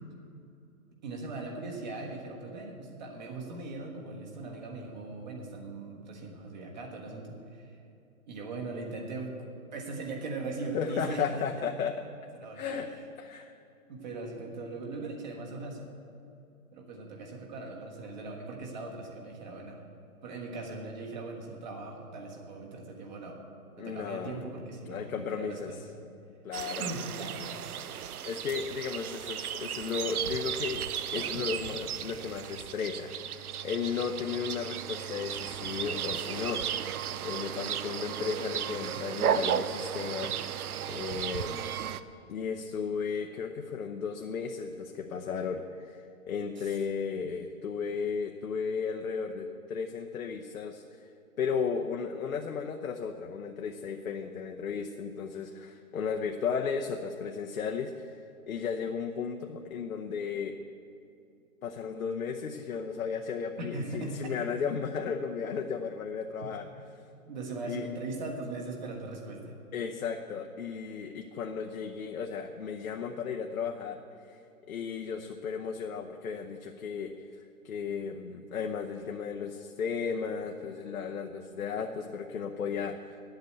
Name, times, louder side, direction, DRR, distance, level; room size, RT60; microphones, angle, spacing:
voice 1, 1.0-7.8 8.3-9.3 9.7-11.6 12.3-12.8 13.9-15.9 16.7-19.8 20.2-23.4 23.8-25.8 26.8-27.6 31.1-31.5 46.6-46.8 63.6-64.3 67.3-69.6, right 3 dB, 30° right, 1 dB, 1.5 m, -39 dB
voice 2, 10.7-12.1 12.5-12.9 13.2-13.5 23.8-24.5 24.9-25.7 26.4-26.9 28.3-30.8 31.1-33.1 33.6-36.6 37.2-40.4 40.9-41.6 42.3-51.0 51.4-58.2 58.5-60.6 61.6-66.7 67.7-67.8 69.7-74.0 74.3-74.4 74.7-77.3 77.6-83.0, left 6 dB, 70° left, 3 dB, 0.9 m, -34 dB
sound 1, 26.5-42.0, right 9 dB, 85° right, 0.7 m, -35 dB
10.5 x 8.2 x 8.1 m, 2.6 s
hypercardioid pair, 165°, 43 cm